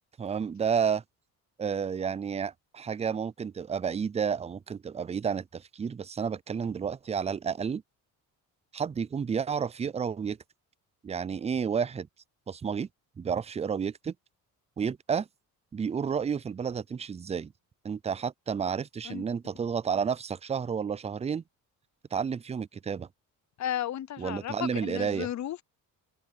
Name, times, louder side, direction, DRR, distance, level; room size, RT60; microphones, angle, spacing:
voice 1, 0.2-1.0 1.6-7.8 8.7-10.4 11.0-12.1 12.5-12.9 13.2-14.1 14.8-15.3 15.7-17.5 17.8-21.4 22.1-23.1 24.2-25.3, right 6 dB, 20° right, 0.4 m, -31 dB
voice 2, 23.6-25.6, left 11 dB, 50° left, 0.8 m, -34 dB
cardioid pair, 90°, 37 cm